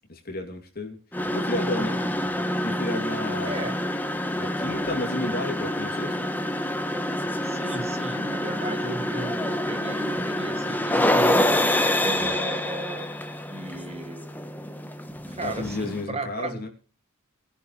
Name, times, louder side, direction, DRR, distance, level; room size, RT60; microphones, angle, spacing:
voice 1, 0.1-1.0 1.3-2.0 2.6-3.7 4.3-6.3 12.2-12.3 15.4-16.7, left 2 dB, 45° left, 3 dB, 2.8 m, -32 dB
sound 1, 1.1-16.0, left 1 dB, 10° left, 1.1 m, -27 dB
voice 2, 3.5-3.9 7.4-11.5 12.0-13.1 13.5-14.4 15.3-16.7, right 2 dB, 30° right, 9 dB, 1.3 m, -35 dB
20.5 x 10.5 x 3.2 m, 0.36 s
head